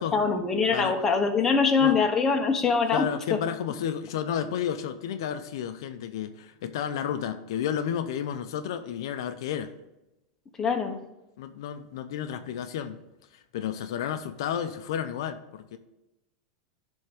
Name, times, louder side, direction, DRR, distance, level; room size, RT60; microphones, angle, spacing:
voice 1, 0.0-3.4 10.6-11.0, left 5 dB, 20° left, 3 dB, 1.0 m, -24 dB
voice 2, 2.9-9.7 11.4-13.0 13.3-15.8, left 9 dB, 75° left, 8 dB, 0.6 m, -32 dB
10.0 x 3.6 x 5.0 m, 0.94 s
supercardioid pair, 130°, 3 cm